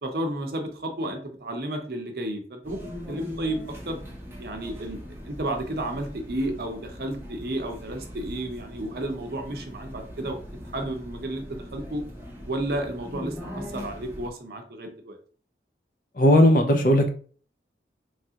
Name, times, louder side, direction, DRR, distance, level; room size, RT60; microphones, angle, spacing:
voice 1, 0.0-2.8 3.1-4.0 4.4-5.0 5.3-10.4 10.7-12.0 12.5-15.2, right 1 dB, 55° right, 4 dB, 0.6 m, -32 dB
sound 1, 2.6-14.3, equal, 15° right, 0.6 m, -40 dB
voice 2, 16.2-17.1, left 1 dB, 50° left, 4 dB, 0.5 m, -17 dB
3.2 x 2.4 x 2.8 m, 0.43 s
head